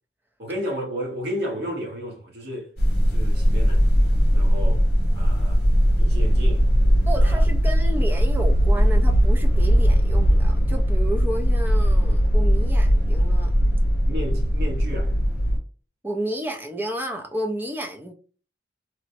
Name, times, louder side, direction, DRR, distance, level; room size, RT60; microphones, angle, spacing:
voice 1, 0.4-2.7 3.1-3.9 4.3-4.8 5.1-5.6 6.0-6.6 7.2-7.4 14.1-15.2, equal, 60° right, 0.9 m, -32 dB
sound 1, 2.8-15.6, equal, 55° left, 0.9 m, -19 dB
voice 2, 7.1-13.5 16.0-18.1, right 1 dB, 10° right, 0.4 m, -31 dB
3.0 x 2.0 x 2.6 m
head